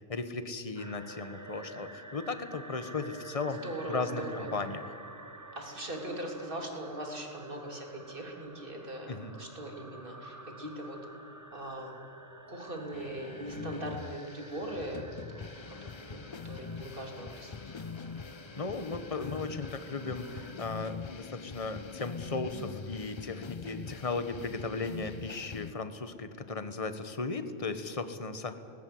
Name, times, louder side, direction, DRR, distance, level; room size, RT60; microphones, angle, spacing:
voice 1, 0.1-4.8 9.1-9.4 18.6-28.6, left 3 dB, 30° left, 9 dB, 1.3 m, -36 dB
sound 1, 0.8-20.6, right 1 dB, 15° right, 1.3 m, -50 dB
voice 2, 3.5-4.5 5.6-11.0 11.5-12.0 12.5-15.1 15.3-15.4 16.0-17.9, right 1 dB, 45° right, 1 dB, 3.6 m, -40 dB
sound 2, 12.9-25.7, left 5 dB, 50° left, 0.3 m, -43 dB
20.0 x 19.5 x 7.9 m, 2.6 s
omnidirectional pair, 1.3 m